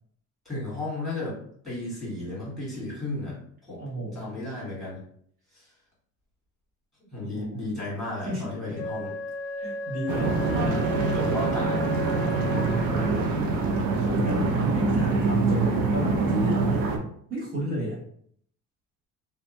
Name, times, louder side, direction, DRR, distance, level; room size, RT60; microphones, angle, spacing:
voice 1, 0.4-1.4 1.6-3.4 3.7-5.0 5.5-5.7 7.1-9.1 10.5-11.9, left 2 dB, ahead, -7 dB, 1.5 m, -34 dB
voice 2, 3.8-4.4 7.2-7.6 8.2-8.8 9.6-10.9 11.6-12.0 12.9-13.5 14.0-16.8 17.3-18.0, right 1 dB, 25° right, -7 dB, 1.1 m, -32 dB
Wind instrument woodwind instrument, 8.7-13.4, equal, 45° left, 0.4 m, -34 dB
sound 1, 10.1-17.0, right 3 dB, 75° right, 0.6 m, -25 dB
2.6 x 2.3 x 3.0 m, 0.64 s
cardioid pair, 145°, 34 cm